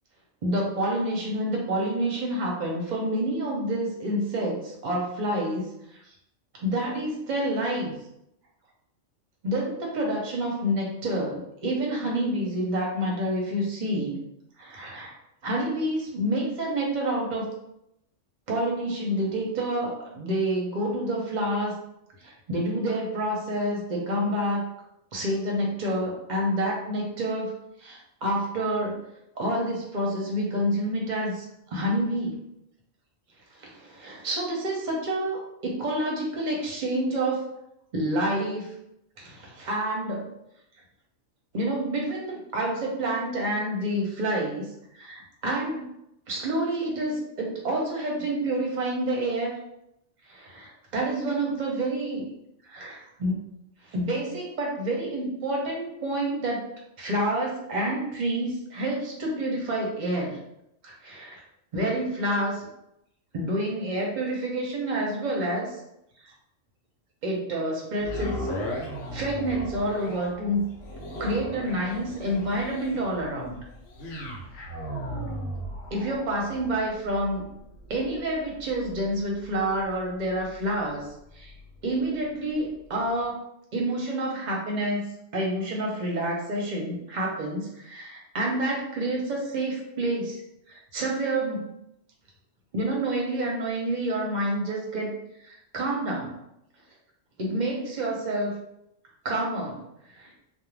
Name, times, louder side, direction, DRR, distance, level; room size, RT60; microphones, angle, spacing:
voice 1, 0.4-5.6 6.6-7.9 9.4-14.1 14.6-15.1 15.4-17.5 18.5-21.7 22.2-24.7 25.1-27.5 27.8-29.0 29.4-32.4 33.6-37.5 37.9-38.7 39.2-40.3 41.5-44.6 44.9-45.9 46.3-49.5 50.3-52.2 52.6-53.4 53.9-56.7 57.0-60.4 60.8-61.4 61.7-62.7 63.3-65.8 66.2-66.3 67.2-68.5 69.1-70.6 71.2-73.6 75.9-77.4 77.9-81.1 81.3-81.5 81.8-83.4 83.7-85.0 85.3-90.4 90.7-91.7 92.7-95.1 95.4-96.4 97.4-98.6 99.2-99.8 100.2-100.3, right 1 dB, 45° right, -2 dB, 0.6 m, -28 dB
sound 1, 68.0-82.2 82.7-82.8, equal, 70° left, 0.9 m, -38 dB
2.5 x 2.0 x 3.1 m, 0.81 s
omnidirectional pair, 1.3 m